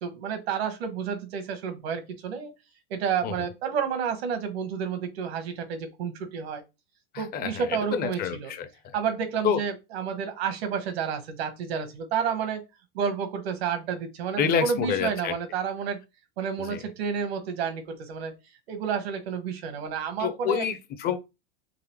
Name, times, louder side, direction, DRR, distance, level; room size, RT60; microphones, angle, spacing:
voice 1, 0.0-2.5 2.9-6.6 7.2-8.5 8.9-12.6 12.9-16.0 16.4-18.3 18.7-20.6, right 7 dB, 80° right, 1.3 m, -30 dB
voice 2, 7.1-9.0 9.4-9.6 14.4-15.4 16.6-16.8 20.2-21.2, left 7 dB, 30° left, 0.5 m, -28 dB
3.9 x 3.1 x 3.0 m
supercardioid pair, 130°, 31 cm